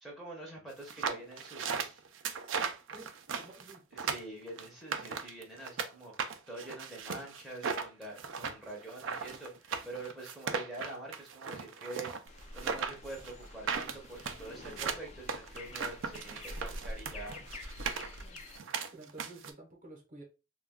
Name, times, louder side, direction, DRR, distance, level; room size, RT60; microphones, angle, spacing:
voice 1, 0.0-2.0 3.9-12.1 12.5-17.4, right 2 dB, ahead, -2 dB, 0.6 m, -46 dB
sound 1, 0.8-5.9 6.2-19.5, right 6 dB, 55° right, 0.4 m, -37 dB
voice 2, 3.4-3.8 18.9-20.2, right 2 dB, 40° right, 1 dB, 0.8 m, -51 dB
sound 2, 12.3-18.6, left 1 dB, 30° left, 0.3 m, -46 dB
2.3 x 2.2 x 3.4 m, 0.30 s
head